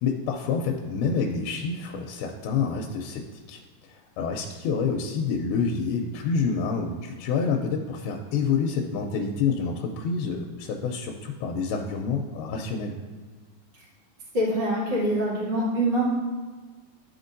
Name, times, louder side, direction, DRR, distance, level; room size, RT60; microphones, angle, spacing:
voice 1, 0.0-3.6 3.9-13.0, left 5 dB, 85° left, 2 dB, 2.4 m, -28 dB
voice 2, 14.3-16.0, right 1 dB, 20° right, -8 dB, 1.4 m, -24 dB
12.0 x 4.4 x 2.6 m, 1.4 s
omnidirectional pair, 4.4 m